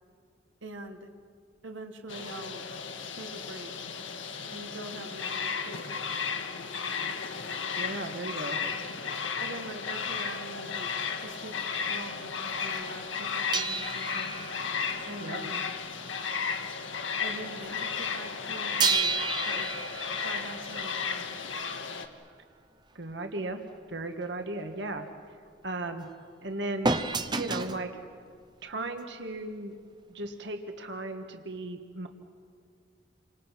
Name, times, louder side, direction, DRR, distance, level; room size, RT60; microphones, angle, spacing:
voice 1, 0.6-1.1 1.6-2.7 3.2-3.7 4.5-6.0 9.4-10.9 11.2-11.5 11.9-14.3 15.1-15.7 17.2-19.2 19.5-19.7 20.2-21.4, right 2 dB, 85° right, 4 dB, 1.8 m, -43 dB
sound 1, 2.1-22.1, left 6 dB, 85° left, 1.7 m, -34 dB
voice 2, 7.8-8.6 15.2-15.4 23.0-23.6 23.9-25.1 25.6-26.1 26.4-26.9 27.3-27.9 28.6-29.7 30.1-32.1, right 2 dB, 65° right, 5 dB, 1.8 m, -36 dB
sound 2, 13.5-16.7 16.9-17.2 18.8-21.5 26.8-27.9 28.8-28.9, right 4 dB, 25° right, 0.8 m, -32 dB
29.5 x 25.5 x 5.9 m, 2.2 s
head